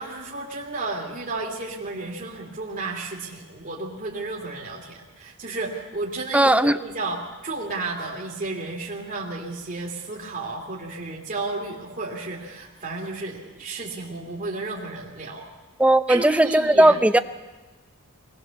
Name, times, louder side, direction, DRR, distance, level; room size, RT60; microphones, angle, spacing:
voice 1, 0.0-7.2 7.4-15.5 16.1-17.0, right 3 dB, 40° right, -2 dB, 2.5 m, -32 dB
voice 2, 6.3-6.8 15.8-17.2, right 1 dB, 5° right, 11 dB, 0.6 m, -17 dB
22.5 x 19.0 x 6.9 m, 1.2 s
head